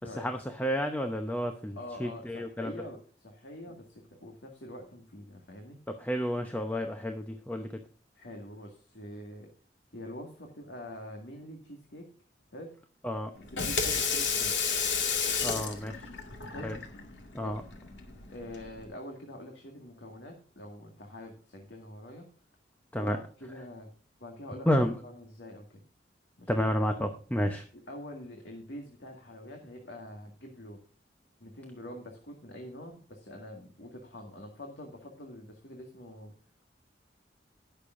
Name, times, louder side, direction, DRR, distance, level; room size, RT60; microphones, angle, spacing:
voice 1, 0.2-2.7 5.9-7.7 13.0-13.3 15.4-16.1 16.6-16.8 17.3-17.6 22.9-23.2 24.7-25.0 26.5-27.6, equal, 10° left, 5 dB, 0.7 m, -30 dB
voice 2, 1.8-5.8 8.1-9.5 9.9-12.1 12.5-12.7 13.5-14.6 16.5-16.7 17.3-17.6 18.3-22.3 23.0-23.9 24.2-24.7 25.0-25.8 26.4-26.6 27.7-30.8 31.4-36.3, left 1 dB, 70° left, 1 dB, 2.0 m, -45 dB
Water tap faucet / Sink (filling or washing), 13.4-18.9, left 5 dB, 85° left, 2.2 m, -32 dB
19.5 x 6.8 x 2.6 m, 0.40 s
head